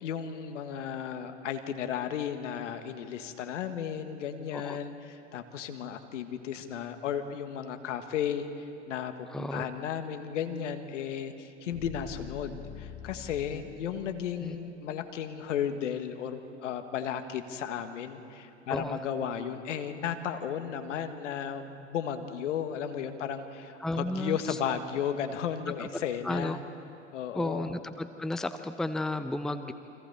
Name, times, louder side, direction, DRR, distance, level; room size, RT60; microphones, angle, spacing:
voice 1, 0.0-26.6 27.1-27.7, left 8 dB, 70° left, 8 dB, 1.7 m, -34 dB
voice 2, 9.3-9.7 14.4-14.6 18.7-19.0 23.8-24.6 25.8-25.9 26.2-26.6 27.3-29.7, left 1 dB, ahead, 10 dB, 0.7 m, -33 dB
sound 1, 10.5-14.6, left 8 dB, 35° left, 1.9 m, -46 dB
29.5 x 25.0 x 4.2 m, 2.7 s
hypercardioid pair, 90°, 38 cm